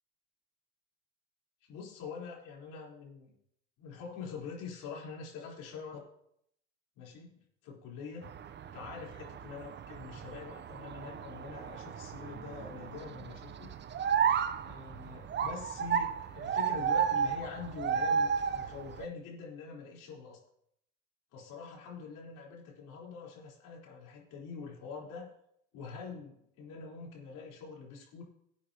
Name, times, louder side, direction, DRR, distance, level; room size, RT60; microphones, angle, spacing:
voice 1, 1.7-3.3 3.8-6.0 7.0-8.3 8.7-13.7 14.6-20.4 21.3-25.3 25.7-28.2, left 5 dB, 60° left, -2 dB, 4.2 m, -45 dB
White Cheeked Gibbon - Nomascus leucogenys, 8.2-19.1, right 7 dB, 30° right, 0.7 m, -33 dB
17.5 x 8.6 x 2.9 m, 0.74 s
hypercardioid pair, 80°, 35 cm